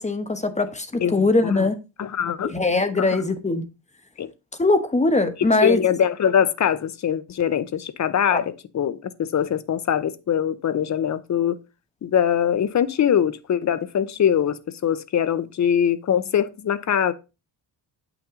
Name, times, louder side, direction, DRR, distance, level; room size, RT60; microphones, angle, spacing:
voice 1, 0.0-1.8 2.4-3.7 4.6-5.8 16.1-16.2, left 2 dB, 15° left, 1.1 m, -21 dB
voice 2, 1.0-1.7 2.0-2.5 3.0-3.2 4.2-4.3 5.6-11.6 12.0-17.1, left 9 dB, 40° left, 0.8 m, -23 dB
8.8 x 6.0 x 3.8 m
cardioid pair, 120°, 45 cm